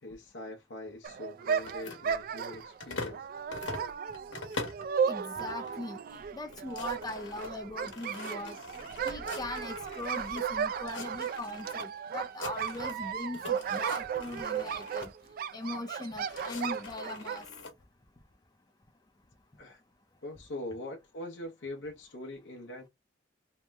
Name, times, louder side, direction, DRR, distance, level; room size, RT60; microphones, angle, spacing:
voice 1, 0.0-3.3 19.6-19.8 20.2-22.9, left 1 dB, 65° left, 0.7 m, -42 dB
sound 1, 1.0-17.5, right 7 dB, 50° right, 0.3 m, -35 dB
sound 2, 1.6-3.2 3.5-4.9 5.4-5.8 6.1-6.2 6.5-10.4 10.8-11.8 12.1-13.1 13.3-15.1 15.9-17.7, left 3 dB, 80° left, 1.0 m, -43 dB
voice 2, 5.1-8.6 9.0-15.1 15.5-17.4, left 2 dB, 20° left, 0.5 m, -40 dB
2.9 x 2.0 x 3.3 m
head